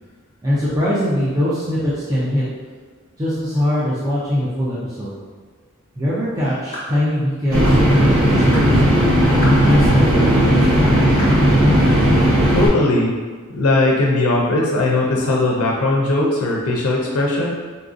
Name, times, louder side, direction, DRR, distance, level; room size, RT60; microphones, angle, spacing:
voice 1, 0.4-2.4 3.2-5.1 6.0-8.8 9.3-11.0, equal, 15° right, -10 dB, 0.4 m, -21 dB
sound 1, 6.7-7.0 7.6-7.8 8.5-8.7 9.4-9.7 10.3-10.4 11.2-11.4, equal, 30° left, 1.0 m, -31 dB
sound 2, 7.5-12.7, equal, 80° right, 0.8 m, -15 dB
voice 2, 12.5-13.1 13.5-17.5, left 2 dB, 90° left, -2 dB, 0.5 m, -18 dB
4.0 x 2.5 x 2.5 m, 1.5 s
head